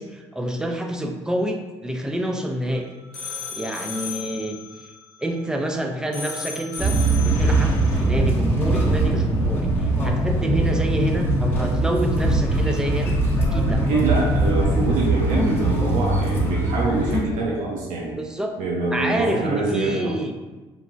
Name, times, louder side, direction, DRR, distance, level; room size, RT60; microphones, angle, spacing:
voice 1, 0.0-2.8 3.5-4.6 5.2-13.2 13.5-13.8 18.1-18.5 18.9-20.3, right 1 dB, 5° right, 3 dB, 0.4 m, -27 dB
sound 1, 2.7-5.8 6.1-8.1, left 5 dB, 80° left, 0.6 m, -36 dB
sound 2, 6.8-17.2, right 2 dB, 15° left, 0.7 m, -21 dB
voice 2, 13.9-18.1 18.6-20.2, right 3 dB, 65° right, -4 dB, 0.6 m, -25 dB
3.1 x 2.1 x 2.5 m, 1.2 s
supercardioid pair, 65°, 14 cm